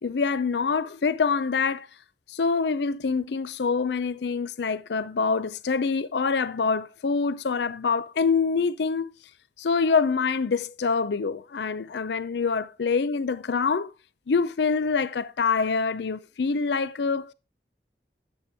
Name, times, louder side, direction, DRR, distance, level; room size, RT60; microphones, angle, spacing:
voice 1, 0.0-1.9 2.3-9.1 9.6-13.9 14.3-17.3, left 5 dB, 70° left, 0.5 m, -25 dB
9.7 x 6.7 x 3.4 m
head